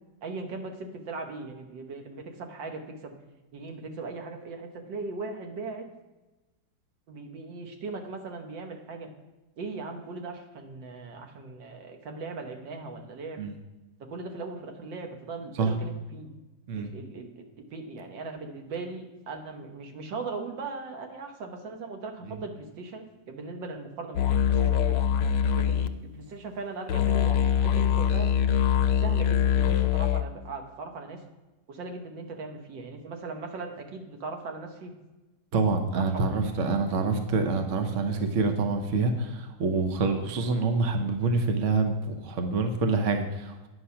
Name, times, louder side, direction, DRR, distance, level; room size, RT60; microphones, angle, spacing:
voice 1, 0.2-3.1 3.5-5.9 7.1-9.1 9.6-13.4 14.0-16.3 16.7-25.0 25.5-28.4 29.0-31.2 31.7-34.9 35.9-36.4, right 3 dB, 85° right, 4 dB, 1.9 m, -39 dB
sound 1, 24.2-25.9 26.9-30.2, left 8 dB, 85° left, 1.3 m, -23 dB
voice 2, 35.5-43.7, right 3 dB, 50° right, 5 dB, 1.1 m, -26 dB
9.9 x 6.3 x 5.7 m, 1.1 s
omnidirectional pair, 1.9 m